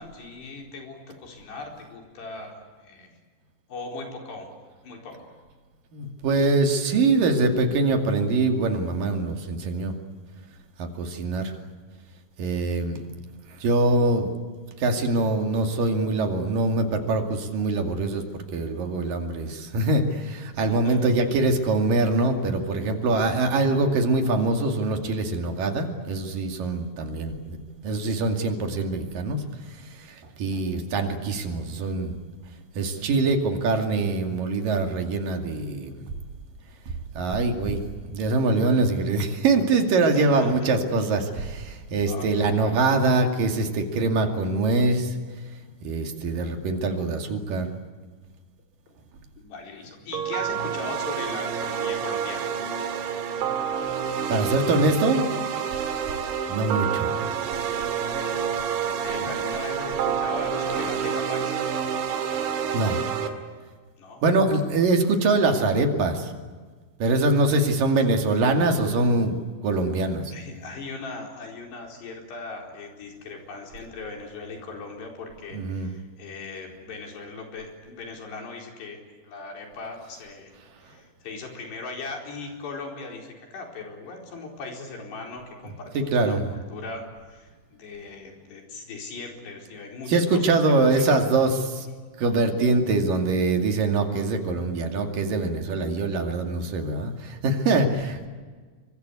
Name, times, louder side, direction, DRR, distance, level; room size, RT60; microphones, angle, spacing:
voice 1, 0.0-3.2 3.7-4.5 4.8-5.3 20.6-21.1 40.1-40.7 42.1-42.9 48.9-49.0 49.4-52.5 57.9-58.5 58.9-61.6 64.0-64.2 67.5-67.9 70.3-91.4, left 3 dB, 70° left, 2 dB, 6.5 m, -39 dB
voice 2, 5.9-9.9 10.8-11.5 12.4-13.1 13.5-14.3 14.8-18.2 18.5-27.6 27.8-32.2 32.8-35.9 36.9-37.8 38.1-45.2 45.8-47.7 52.9-53.4 54.3-55.3 56.5-57.1 62.7-63.0 64.2-66.3 67.0-69.4 69.6-70.3 75.5-75.9 85.9-86.5 90.1-91.9 92.2-98.3, right 3 dB, 55° right, 4 dB, 3.8 m, -23 dB
sound 1, 50.1-63.3, right 7 dB, 85° right, 4.4 m, -28 dB
26.5 x 24.5 x 8.3 m, 1.4 s
omnidirectional pair, 5.1 m